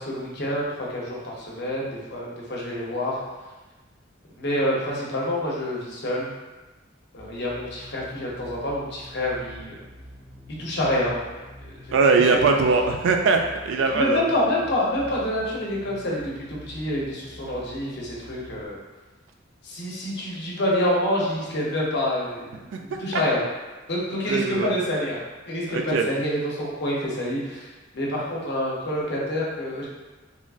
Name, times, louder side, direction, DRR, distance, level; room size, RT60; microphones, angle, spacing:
voice 1, 0.0-3.2 4.4-6.3 7.1-9.8 10.6-11.2 11.6-11.8 12.3-12.6 13.9-18.8 19.6-23.4 23.9-25.2 25.5-27.7 27.9-29.9, left 1 dB, 60° left, -4 dB, 0.7 m, -27 dB
sound 1, 7.2-18.7, equal, 25° right, 0.5 m, -46 dB
voice 2, 11.9-14.2 22.9-23.2 24.3-24.7 25.7-26.1, right 4 dB, 75° right, 3 dB, 0.3 m, -21 dB
3.0 x 2.4 x 2.3 m, 1.2 s
head